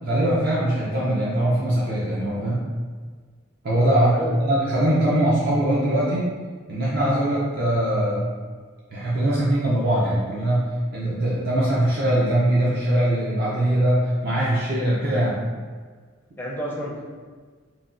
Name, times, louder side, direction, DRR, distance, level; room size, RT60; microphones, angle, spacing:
voice 1, 0.0-2.6 3.6-6.3 6.7-8.3 8.9-15.4, right 1 dB, 50° right, -7 dB, 0.5 m, -22 dB
voice 2, 4.1-4.5 16.4-17.0, equal, 10° left, -5 dB, 0.4 m, -30 dB
3.1 x 2.2 x 2.5 m, 1.5 s
head